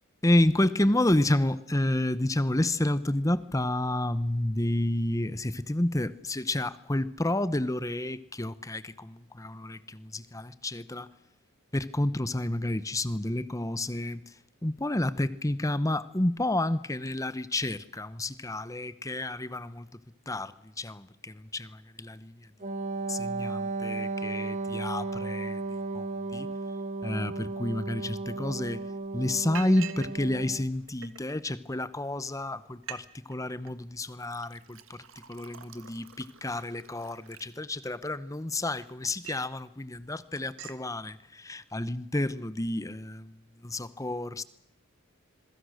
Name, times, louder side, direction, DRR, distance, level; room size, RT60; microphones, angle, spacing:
voice 1, 0.2-11.1 11.7-14.3 14.6-19.9 20.3-22.5 23.1-26.5 27.0-28.8 29.1-35.0 35.3-44.4, left 1 dB, 15° left, 0.9 m, -30 dB
Wind instrument woodwind instrument, 22.6-30.7, right 3 dB, 35° right, 1.0 m, -34 dB
Liquid, 28.8-29.1 29.5-30.1 30.4-31.3 32.0-32.1 32.4-32.5 32.7-33.0 33.3-33.7 34.2-38.0 38.5-39.5 39.9-40.1 40.4-40.8, right 9 dB, 65° right, 1.6 m, -46 dB
26.5 x 23.0 x 6.4 m
head